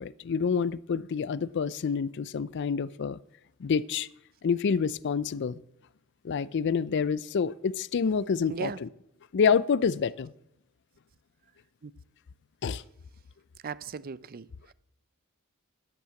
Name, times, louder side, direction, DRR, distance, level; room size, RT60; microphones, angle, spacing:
voice 1, 0.0-3.2 3.6-4.1 4.4-5.6 6.2-8.9 9.3-10.3 12.6-12.8, left 6 dB, 50° left, 0.4 m, -27 dB
voice 2, 13.6-14.5, right 5 dB, 40° right, 0.4 m, -36 dB
12.0 x 8.5 x 7.6 m
head